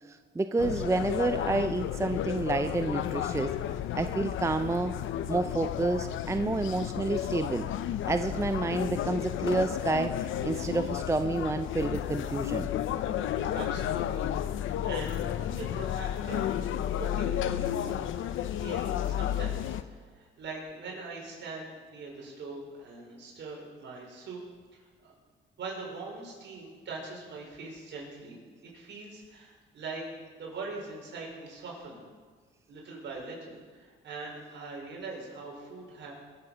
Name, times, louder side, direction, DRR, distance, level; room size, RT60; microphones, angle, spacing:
voice 1, 0.1-3.6 3.9-4.9 5.3-7.7 8.0-12.7, right 3 dB, 15° right, 9 dB, 0.6 m, -29 dB
sound 1, 0.6-19.8, left 11 dB, 80° left, 0.7 m, -32 dB
voice 2, 13.5-14.2 14.6-16.6 17.0-19.8 20.2-24.4 25.0-25.1 25.6-28.4 28.7-30.1 30.3-32.1 32.7-36.1, right 3 dB, 65° right, -2 dB, 5.2 m, -42 dB
22.5 x 7.8 x 6.1 m, 1.5 s
cardioid pair, 90°, 20 cm